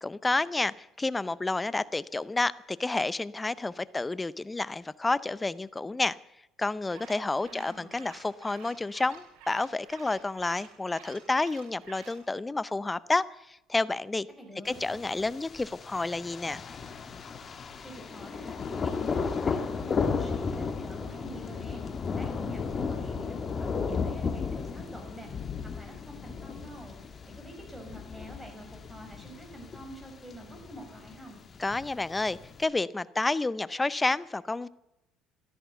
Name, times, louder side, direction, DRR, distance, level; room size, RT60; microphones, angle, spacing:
voice 1, 0.0-6.2 6.6-14.3 14.6-16.6 31.6-34.7, left 3 dB, 15° left, 18 dB, 0.6 m, -30 dB
sound 1, 6.8-12.2, right 7 dB, 85° right, 3.6 m, -52 dB
voice 2, 7.5-8.0 14.4-14.8 17.8-21.8 22.2-25.3 25.8-26.9 27.3-31.4, right 1 dB, 10° right, 3 dB, 5.7 m, -47 dB
Thunder, 14.7-32.6, left 5 dB, 30° left, 1.6 m, -35 dB
15.0 x 13.0 x 7.0 m, 0.88 s
cardioid pair, 125°, 0 cm